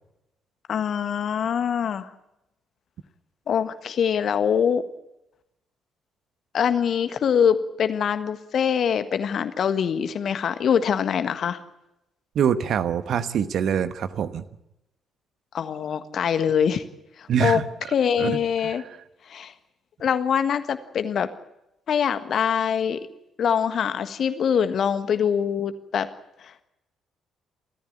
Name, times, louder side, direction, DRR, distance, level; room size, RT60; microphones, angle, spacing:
voice 1, 0.7-2.1 3.5-4.8 6.5-11.6 15.5-16.8 17.2-17.6 17.9-18.8 19.3-19.5 20.0-21.3 21.9-23.0 23.4-26.1 26.4-26.6, left 7 dB, 50° left, 11 dB, 1.5 m, -24 dB
voice 2, 12.3-14.4 17.3-17.6 18.2-18.8, right 8 dB, 55° right, 12 dB, 1.1 m, -24 dB
29.5 x 14.0 x 8.6 m, 0.88 s
figure-of-eight pair, 40°, 0 cm